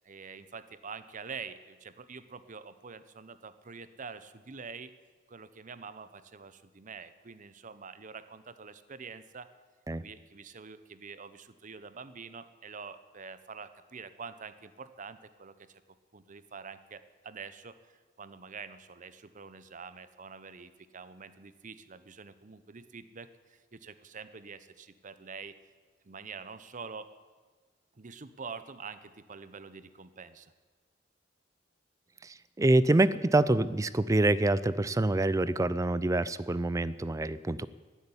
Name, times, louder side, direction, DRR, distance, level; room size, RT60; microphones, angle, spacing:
voice 1, 0.0-4.9 5.3-9.5 10.0-15.8 16.1-25.5 26.0-27.1 27.9-30.5, right 5 dB, 45° right, 13 dB, 0.8 m, -46 dB
voice 2, 32.2-37.7, right 2 dB, 15° right, 17 dB, 0.4 m, -26 dB
15.5 x 8.3 x 9.8 m, 1.4 s
head